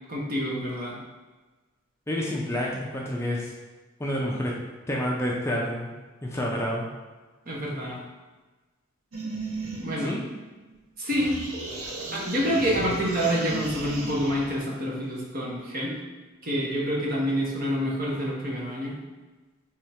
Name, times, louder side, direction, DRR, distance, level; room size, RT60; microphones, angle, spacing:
voice 1, 0.1-1.0 7.5-8.0 9.8-10.2 11.0-11.4 12.1-16.0 16.4-19.0, equal, 45° right, -3 dB, 1.0 m, -27 dB
voice 2, 2.1-3.5 4.0-4.5 4.9-5.9 6.2-6.9 10.0-10.2, equal, 10° left, -3 dB, 0.5 m, -28 dB
sound 1, 9.1-10.8 11.1-14.6, right 2 dB, 90° right, 0.9 m, -36 dB
3.6 x 3.3 x 4.2 m, 1.3 s
head